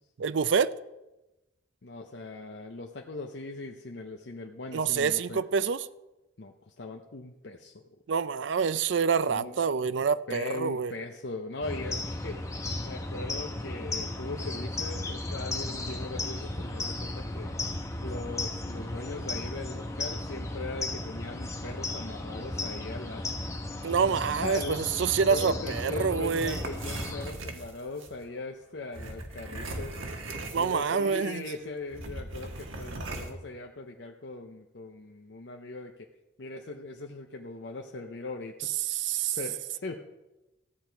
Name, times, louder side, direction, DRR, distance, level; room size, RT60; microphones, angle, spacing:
voice 1, 0.2-0.7 4.7-5.9 8.1-10.9 23.8-26.6 30.5-31.4 38.9-39.4, right 6 dB, 70° right, 0.4 m, -27 dB
voice 2, 1.8-5.4 6.4-8.0 9.3-9.9 10.3-12.4 12.8-17.5 18.0-23.3 23.8-23.9 24.4-24.8 25.3-30.0 30.6-35.9 36.4-38.7 39.1-40.0, left 2 dB, 60° left, 0.7 m, -40 dB
sound 1, 11.6-27.3, left 2 dB, 15° left, 0.9 m, -35 dB
sound 2, 26.2-28.1 28.9-31.1 31.3-31.5 31.9-33.3, right 2 dB, 85° right, 1.6 m, -39 dB
14.5 x 8.7 x 4.6 m
head